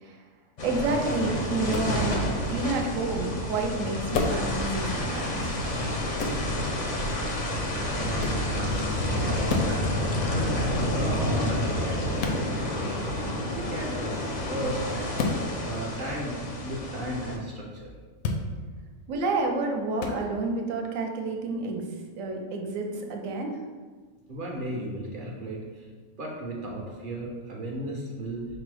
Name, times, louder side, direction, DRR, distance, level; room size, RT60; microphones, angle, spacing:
sound 1, 0.6-17.4, left 1 dB, 50° left, 0.5 m, -29 dB
voice 1, 0.6-5.5 19.1-23.6, right 3 dB, 70° right, 2 dB, 1.0 m, -30 dB
sound 2, 1.7-2.0 4.1-4.5 6.2-6.4 8.2-8.5 9.5-9.8 12.2-12.4 15.2-15.4 18.2-18.4 20.0-20.2, left 4 dB, 80° left, 1.0 m, -29 dB
voice 2, 7.9-9.7 10.5-13.1 13.5-15.1 15.6-17.9 24.3-25.9 26.2-28.5, right 1 dB, 45° right, -2 dB, 0.7 m, -35 dB
5.1 x 2.0 x 4.7 m, 1.5 s
omnidirectional pair, 1.5 m